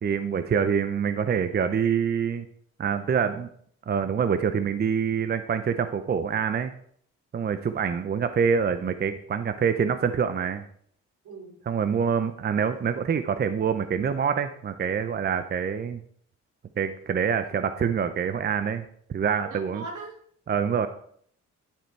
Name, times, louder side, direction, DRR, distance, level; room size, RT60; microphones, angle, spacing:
voice 1, 0.0-2.5 2.8-3.5 3.9-6.7 7.3-10.6 11.7-16.0 16.8-18.8 19.1-19.8 20.5-20.9, right 7 dB, 35° right, 10 dB, 0.6 m, -26 dB
voice 2, 11.2-11.6 19.4-20.2, right 3 dB, 75° right, 1 dB, 2.9 m, -39 dB
10.5 x 5.0 x 4.5 m, 0.62 s
cardioid pair, 90°, 30 cm